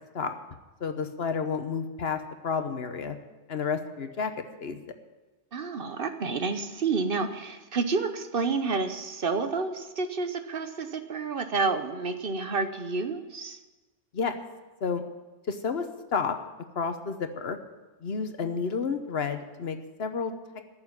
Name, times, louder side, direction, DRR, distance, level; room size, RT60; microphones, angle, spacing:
voice 1, 0.8-3.2 3.5-4.8 14.1-14.4 14.8-15.0 15.5-15.8 16.1-16.4 16.7-17.6 18.0-20.6, left 5 dB, 60° left, 8 dB, 1.2 m, -31 dB
voice 2, 5.5-13.6, right 4 dB, 55° right, 8 dB, 1.0 m, -29 dB
13.5 x 7.0 x 9.7 m, 1.2 s
omnidirectional pair, 1.2 m